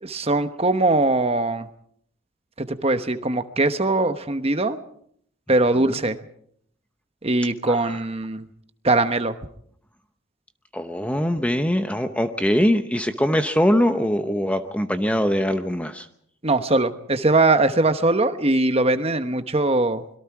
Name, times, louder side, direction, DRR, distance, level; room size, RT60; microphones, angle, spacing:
voice 1, 0.0-1.7 2.6-4.8 5.5-6.2 7.2-8.5 8.8-9.3 16.4-20.0, right 2 dB, 25° right, 9 dB, 1.1 m, -21 dB
voice 2, 7.7-8.0 10.7-16.1, equal, 5° left, 8 dB, 0.7 m, -22 dB
25.5 x 22.5 x 4.8 m, 0.65 s
head